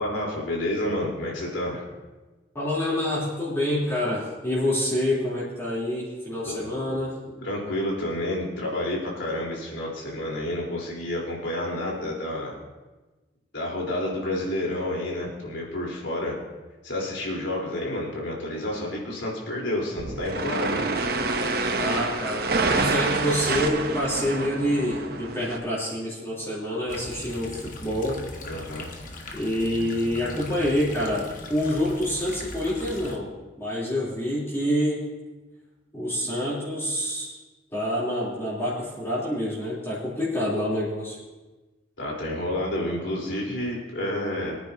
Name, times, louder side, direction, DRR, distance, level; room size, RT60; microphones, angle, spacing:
voice 1, 0.0-1.8 6.4-6.7 7.4-12.5 13.5-16.4 16.8-20.9 28.4-28.9 42.0-44.6, left 1 dB, 80° left, -3 dB, 4.2 m, -29 dB
voice 2, 2.5-7.2 21.8-28.2 29.3-35.1 35.9-37.4 37.7-41.2, left 1 dB, 15° left, -9 dB, 3.6 m, -27 dB
sound 1, 20.0-25.6, right 3 dB, 50° right, 1.0 m, -27 dB
sound 2, 26.9-33.2, left 2 dB, 45° left, 1.4 m, -40 dB
24.0 x 9.7 x 2.9 m, 1.2 s
head